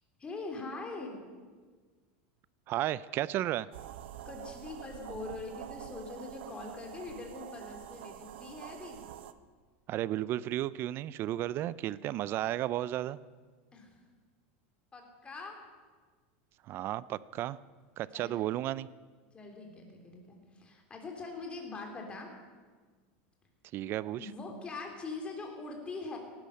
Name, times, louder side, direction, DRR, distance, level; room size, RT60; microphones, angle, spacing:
voice 1, 0.2-1.2 4.2-9.0 13.7-14.0 14.9-15.6 18.1-18.4 19.3-22.3 24.1-26.2, left 3 dB, 15° left, 2 dB, 3.3 m, -42 dB
voice 2, 2.7-3.7 9.9-13.2 16.6-17.6 18.0-18.9 23.7-24.3, right 13 dB, 40° right, 19 dB, 0.5 m, -33 dB
sound 1, 3.7-9.3, right 12 dB, 75° right, 0.9 m, -46 dB
18.0 x 12.0 x 6.6 m, 1.5 s
supercardioid pair, 140°, 6 cm